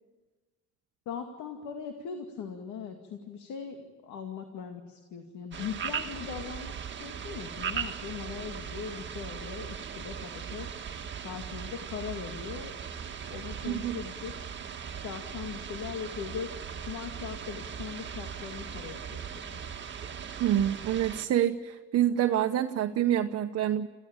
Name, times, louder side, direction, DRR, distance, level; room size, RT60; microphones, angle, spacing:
voice 1, 1.1-10.7 11.2-12.8 13.3-14.5 15.0-16.5 16.8-19.6, left 7 dB, 75° left, 5 dB, 2.3 m, -40 dB
sound 1, 5.5-21.3, right 7 dB, 40° right, 1.7 m, -39 dB
voice 2, 13.6-14.0 20.4-23.9, right 11 dB, 55° right, 5 dB, 1.0 m, -27 dB
26.5 x 16.0 x 8.9 m, 1.3 s
cardioid pair, 90°, 30 cm